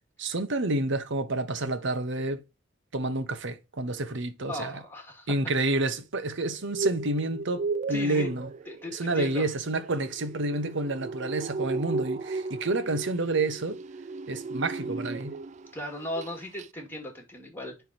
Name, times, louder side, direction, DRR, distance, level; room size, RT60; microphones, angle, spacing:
voice 1, 0.2-2.4 2.9-4.7 5.3-8.5 8.9-13.8 14.3-15.3, right 2 dB, 65° right, 1.0 m, -29 dB
voice 2, 4.5-5.4 7.9-8.3 8.7-9.5 15.7-17.8, left 1 dB, 10° left, 2.2 m, -37 dB
sound 1, 6.5-15.7 16.0-16.3 16.6-16.7, right 3 dB, 35° right, 0.3 m, -35 dB
10.5 x 3.5 x 2.9 m
head